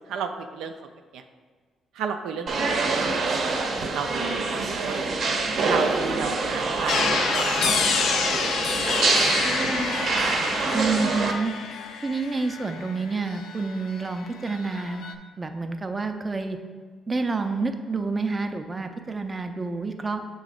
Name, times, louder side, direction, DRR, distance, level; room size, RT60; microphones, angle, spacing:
voice 1, 0.1-0.7 1.1-1.2 1.9-3.7 3.9-5.0 5.6-8.1 8.4-8.9, right 6 dB, 85° right, 5 dB, 0.4 m, -33 dB
philadelphia independencehall stairs, 2.5-11.3, right 3 dB, 60° right, 0.8 m, -25 dB
sound 1, 6.9-14.1 14.3-15.1, left 5 dB, 75° left, 0.4 m, -28 dB
voice 2, 10.7-11.5 12.0-15.1 15.4-16.6 17.1-20.2, right 4 dB, 25° right, 6 dB, 0.5 m, -28 dB
6.6 x 3.1 x 5.0 m, 1.5 s
cardioid pair, 90°, 0 cm